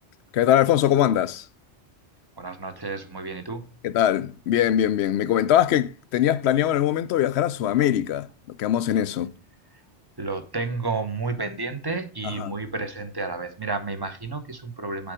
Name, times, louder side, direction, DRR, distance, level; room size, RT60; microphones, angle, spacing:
voice 1, 0.3-1.4 3.8-8.3 8.6-9.3 12.4-12.5, left 11 dB, 75° left, 0.8 m, -22 dB
voice 2, 2.4-3.7 10.2-15.1, right 3 dB, 20° right, 1.0 m, -31 dB
7.0 x 4.9 x 4.8 m
omnidirectional pair, 1.2 m